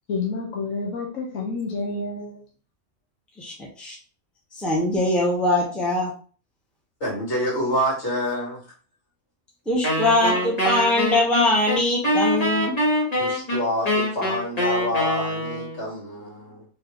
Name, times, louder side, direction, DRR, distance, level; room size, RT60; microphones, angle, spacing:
voice 1, 0.1-2.4, left 3 dB, 90° left, -2 dB, 1.3 m, -29 dB
voice 2, 3.4-4.0 4.6-6.1 9.7-12.7, left 1 dB, ahead, -4 dB, 1.2 m, -22 dB
voice 3, 7.0-8.7 13.1-16.6, equal, 60° left, -3 dB, 2.3 m, -27 dB
Wind instrument woodwind instrument, 9.8-15.9, left 1 dB, 30° left, 1.5 m, -24 dB
4.9 x 3.0 x 3.1 m, 0.38 s
omnidirectional pair, 1.3 m